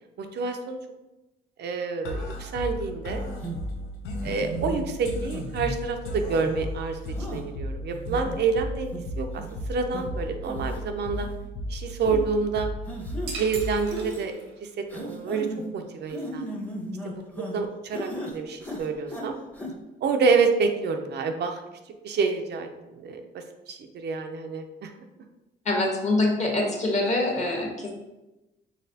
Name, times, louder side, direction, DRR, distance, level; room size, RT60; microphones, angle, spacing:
voice 1, 0.2-0.8 1.6-3.3 4.2-7.0 7.3-9.4 9.7-11.3 11.7-12.7 13.4-14.3 14.6-15.5 15.7-16.5 17.0-19.4 20.0-21.6 22.0-23.2 23.7-24.9, right 4 dB, 60° right, 5 dB, 0.5 m, -28 dB
sound 1, 2.0-14.0, equal, 85° left, 0.6 m, -35 dB
sound 2, 3.4-3.6 4.2-4.8 5.3-5.8 6.3-6.6 7.2-7.4 7.9-8.4 8.9-9.0 9.4-9.6 9.9-10.0 10.4-10.8 11.2-11.3 12.0-12.2 12.9-13.4 13.9-14.2 14.9-15.6 16.1-17.6 17.9-18.3 18.6-19.3 19.5-19.7, equal, 5° left, 0.7 m, -36 dB
sound 3, 13.3-14.7, right 4 dB, 80° right, 0.8 m, -39 dB
voice 2, 25.6-27.9, left 2 dB, 35° left, 1 dB, 1.0 m, -25 dB
4.0 x 3.2 x 2.7 m, 1.0 s
cardioid pair, 90°, 20 cm